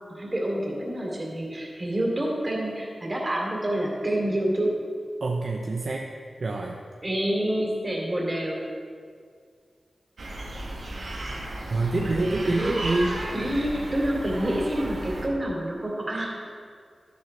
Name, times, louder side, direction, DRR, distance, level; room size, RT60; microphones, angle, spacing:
voice 1, 0.1-4.7 7.0-8.6 12.1-12.8 13.3-16.5, right 1 dB, 30° right, -3 dB, 2.8 m, -28 dB
voice 2, 5.2-6.1 6.4-6.8 11.7-13.2, right 2 dB, 60° right, 0 dB, 0.7 m, -26 dB
sound 1, 10.2-15.3, right 1 dB, 80° right, 1.8 m, -34 dB
12.0 x 11.0 x 3.3 m, 2.1 s
wide cardioid pair, 70°, 0 cm